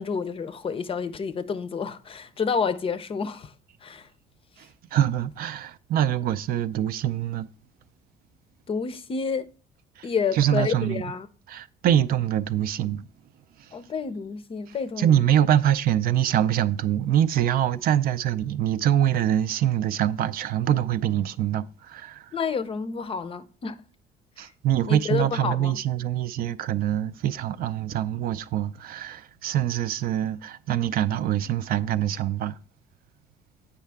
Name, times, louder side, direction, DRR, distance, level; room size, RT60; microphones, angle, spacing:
voice 1, 0.0-3.5 3.8-4.1 8.7-9.5 10.0-11.3 13.7-15.2 22.3-23.8 24.4-24.5 24.9-25.8, left 5 dB, 35° left, 0.5 m, -29 dB
voice 2, 4.6-7.5 10.0-11.1 11.5-13.1 13.6-13.7 14.7-22.3 24.4-32.6, right 11 dB, 60° right, 0.4 m, -24 dB
8.4 x 5.6 x 3.4 m
cardioid pair, 110°, 17 cm